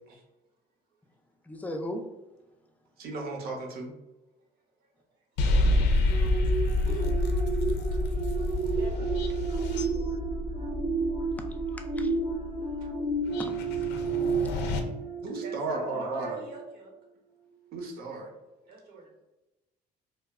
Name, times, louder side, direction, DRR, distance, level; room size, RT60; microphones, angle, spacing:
voice 1, 1.4-2.1 11.4-12.1 13.4-13.5 13.9-14.6, left 1 dB, 10° left, 4 dB, 0.3 m, -39 dB
voice 2, 3.0-3.9 15.2-16.4 17.7-18.3, right 3 dB, 65° right, 1 dB, 0.7 m, -34 dB
sound 1, 5.4-14.8, left 2 dB, 90° left, 0.4 m, -29 dB
voice 3, 6.0-6.3 6.7-7.2 7.9-8.0 8.6-10.2 13.7-13.8 15.0-16.9 18.7-19.1, right 3 dB, 85° right, -2 dB, 1.0 m, -45 dB
sound 2, 6.1-16.0 16.4-16.6, right 4 dB, 30° right, 0.6 m, -32 dB
2.2 x 2.0 x 3.4 m, 1.0 s
cardioid pair, 110°, 17 cm